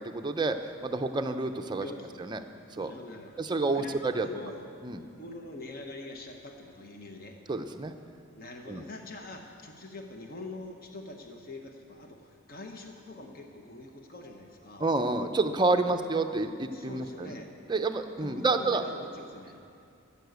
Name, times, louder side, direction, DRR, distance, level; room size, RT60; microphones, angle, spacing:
voice 1, 0.0-1.9 2.2-2.4 2.8-2.9 3.4-4.3 4.8-5.0 7.5-7.9 8.7-8.8 14.8-17.4 17.7-18.8, right 3 dB, 20° right, 6 dB, 0.5 m, -29 dB
voice 2, 1.7-2.3 2.7-3.4 3.7-4.7 5.1-7.4 8.4-14.9 15.7-16.0 16.7-17.5 18.2-19.6, left 2 dB, 45° left, 3 dB, 0.9 m, -44 dB
14.5 x 7.0 x 8.0 m, 2.5 s
head